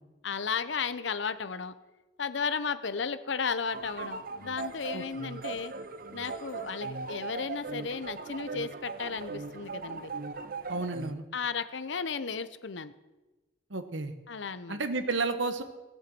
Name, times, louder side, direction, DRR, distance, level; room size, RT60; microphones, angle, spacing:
voice 1, 0.2-1.7 2.2-5.7 6.1-10.1 11.3-12.9 14.3-14.8, left 5 dB, 70° left, 13 dB, 0.8 m, -34 dB
sound 1, 3.7-11.1, right 4 dB, 50° right, 0.7 m, -39 dB
voice 2, 10.7-11.2 13.7-14.1 14.7-15.6, right 3 dB, 75° right, 9 dB, 1.3 m, -31 dB
15.0 x 8.2 x 7.7 m, 1.1 s
head